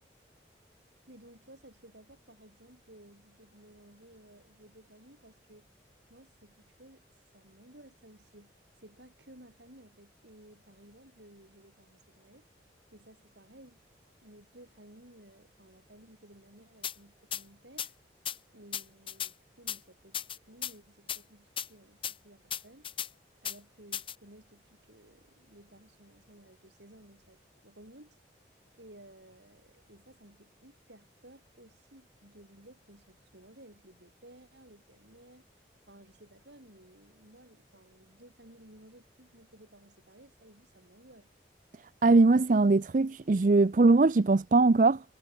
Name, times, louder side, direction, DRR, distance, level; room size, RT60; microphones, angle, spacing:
voice 1, 1.1-5.7 6.1-7.0 7.3-8.5 8.8-12.5 12.9-13.8 14.2-17.9 18.5-22.9 23.4-28.2 28.7-35.5 35.9-41.3, right 1 dB, 75° right, 7.4 m, -56 dB
sound 1, 16.8-16.9 17.3-17.4 17.8-17.9 18.2-18.4 18.7-19.3 19.7-19.8 20.1-20.7 21.1-21.2 21.6-21.7 22.0-22.1 22.5-23.1 23.4-23.6 23.9-24.1, left 9 dB, 30° left, 3.3 m, -35 dB
voice 2, 42.0-45.0, right 3 dB, 45° right, 0.5 m, -21 dB
head